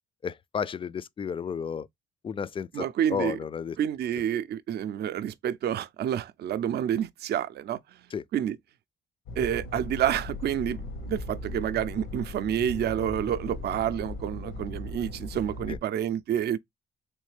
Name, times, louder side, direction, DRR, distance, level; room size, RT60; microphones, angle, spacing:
voice 1, 0.2-1.9 2.2-3.8 8.1-8.2 15.7-15.8, left 7 dB, 25° left, 0.3 m, -32 dB
voice 2, 2.7-3.4 3.8-7.8 8.3-8.6 9.4-16.6, right 10 dB, 55° right, 0.4 m, -29 dB
sound 1, 9.3-15.8, left 2 dB, 85° left, 0.8 m, -38 dB
3.4 x 3.2 x 3.2 m
cardioid pair, 90°, 20 cm